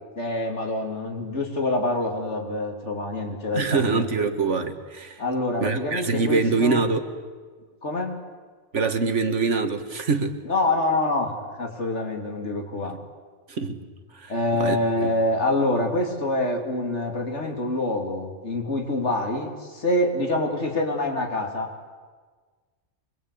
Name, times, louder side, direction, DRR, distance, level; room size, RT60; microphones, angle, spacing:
voice 1, 0.2-4.1 5.2-6.8 7.8-8.2 10.5-11.3 11.6-12.9 14.3-21.7, left 2 dB, 70° left, 2 dB, 3.4 m, -26 dB
voice 2, 3.5-5.2 5.6-7.0 8.7-10.4 13.5-13.8 14.1-14.3 14.6-15.1, right 4 dB, 75° right, 8 dB, 2.0 m, -24 dB
25.0 x 21.5 x 8.5 m, 1.5 s
omnidirectional pair, 1.2 m